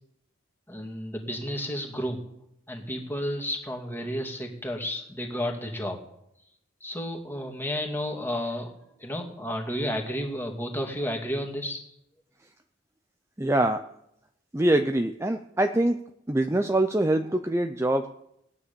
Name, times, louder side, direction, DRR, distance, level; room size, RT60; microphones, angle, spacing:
voice 1, 0.7-2.2 2.7-6.0 6.8-8.7 9.0-11.8, equal, 10° left, 2 dB, 2.3 m, -32 dB
voice 2, 13.4-13.8 14.5-16.0 16.3-18.1, right 1 dB, 15° right, 6 dB, 0.5 m, -24 dB
18.5 x 9.8 x 6.9 m, 0.80 s
head